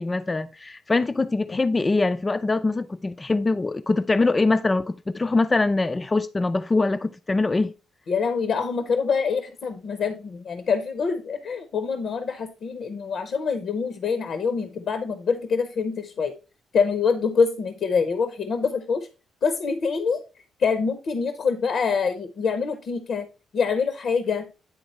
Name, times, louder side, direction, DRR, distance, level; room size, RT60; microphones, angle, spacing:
voice 1, 0.0-7.7, left 3 dB, 25° left, 0.3 m, -23 dB
voice 2, 8.1-16.3 16.7-19.1 19.4-20.2 20.6-23.3 23.5-24.4, left 5 dB, 60° left, 0.7 m, -25 dB
9.3 x 3.6 x 4.1 m
cardioid pair, 90°, 0 cm